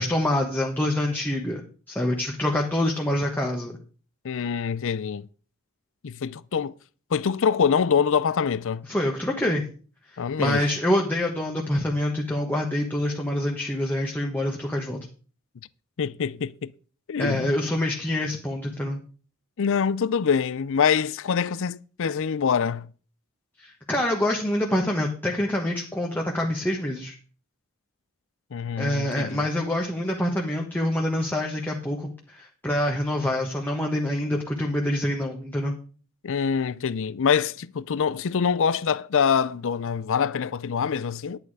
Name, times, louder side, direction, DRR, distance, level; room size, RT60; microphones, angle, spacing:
voice 1, 0.0-1.6 1.9-3.8 8.9-9.6 10.1-15.0 17.2-19.0 23.6-27.1 28.8-35.8, left 1 dB, 10° left, 1.2 m, -26 dB
voice 2, 4.2-5.3 6.0-6.7 7.1-8.9 10.2-10.6 16.0-16.7 17.1-17.5 19.6-22.9 28.5-29.4 36.2-41.4, left 6 dB, 65° left, 0.5 m, -25 dB
11.0 x 8.8 x 4.8 m
head